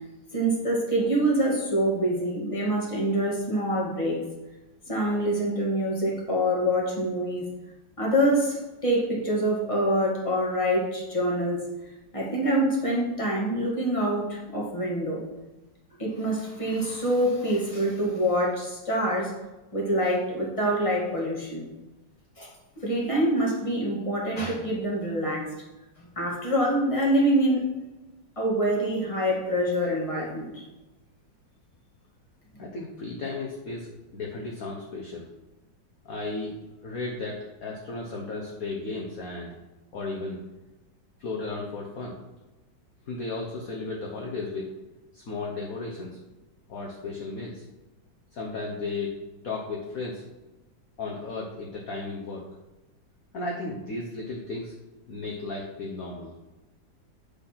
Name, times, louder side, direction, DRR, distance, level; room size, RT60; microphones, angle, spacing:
voice 1, 0.3-4.2 4.9-7.5 8.0-11.6 12.1-15.2 16.0-19.3 19.7-21.6 22.4-22.5 22.8-25.5 26.0-27.6 28.4-30.6, right 1 dB, 15° left, -4 dB, 2.0 m, -25 dB
voice 2, 32.6-35.3 36.0-36.6 36.8-39.6 39.9-40.4 41.2-42.2 43.1-44.7 45.1-46.2 46.7-47.6 48.3-49.2 49.4-50.2 51.0-52.4 53.3-54.7 55.1-56.3, left 3 dB, 50° left, -1 dB, 1.3 m, -34 dB
8.8 x 4.1 x 5.8 m, 1.1 s
omnidirectional pair, 2.1 m